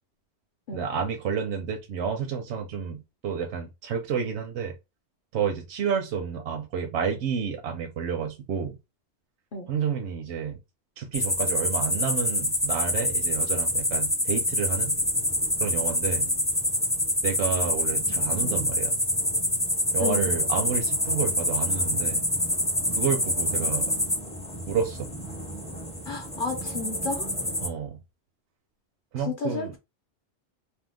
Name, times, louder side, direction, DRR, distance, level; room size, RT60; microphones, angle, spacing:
voice 1, 0.7-4.8 5.3-8.8 9.7-10.6 11.0-15.0 15.6-16.3 17.2-19.0 19.9-22.2 22.9-23.9 24.7-25.1 27.6-28.0 29.1-29.7, right 6 dB, 80° right, 0.9 m, -30 dB
sound 1, 11.1-27.7, left 1 dB, 10° left, 0.3 m, -26 dB
voice 2, 20.0-20.3 26.0-27.3 29.2-29.8, left 4 dB, 55° left, 0.7 m, -32 dB
2.7 x 2.2 x 3.4 m
omnidirectional pair, 1.1 m